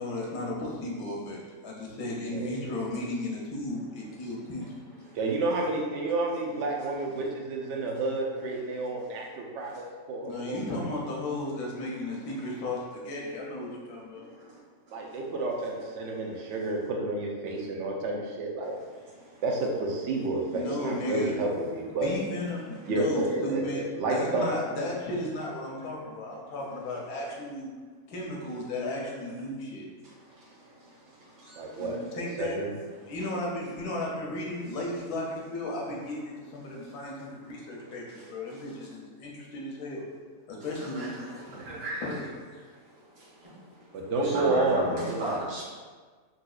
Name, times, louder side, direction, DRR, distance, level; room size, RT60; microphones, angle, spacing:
voice 1, 0.0-4.8 10.2-14.3 20.5-21.3 22.0-22.6 22.9-27.7 28.1-29.9 31.8-32.6 33.1-37.1 37.4-40.0 40.5-41.1 41.5-41.6 42.0-42.2, left 1 dB, 90° left, -2 dB, 1.3 m, -35 dB
voice 2, 2.2-2.7 5.1-10.6 14.9-18.8 19.4-22.1 22.9-24.5 31.6-32.0 32.4-32.7 41.6-41.8 43.9-45.4, right 2 dB, 65° right, 0 dB, 0.7 m, -30 dB
voice 3, 4.3-4.7 5.0-5.2 7.7-8.0 8.6-9.3 9.6-9.8 10.3-10.5 14.2-14.6 14.9-15.3 16.0-16.5 18.6-19.4 20.4-20.6 25.8-26.1 26.4-26.6 30.0-31.9 33.0-33.1 36.6-38.9 40.6-42.2 42.6-45.6, right 1 dB, 30° right, -10 dB, 0.9 m, -40 dB
3.9 x 2.7 x 2.4 m, 1.4 s
omnidirectional pair, 1.6 m